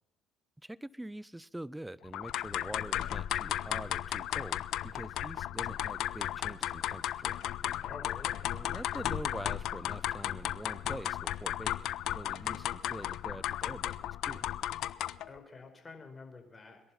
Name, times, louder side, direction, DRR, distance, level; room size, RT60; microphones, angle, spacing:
voice 1, 0.6-7.4 8.5-14.5, right 1 dB, 10° right, 21 dB, 0.6 m, -45 dB
sound 1, 2.1-15.3, left 12 dB, 65° left, 0.6 m, -35 dB
voice 2, 7.8-8.4 15.3-16.8, left 4 dB, 25° left, 5 dB, 4.7 m, -49 dB
21.5 x 11.0 x 5.7 m, 0.85 s
hypercardioid pair, 55°, 0 cm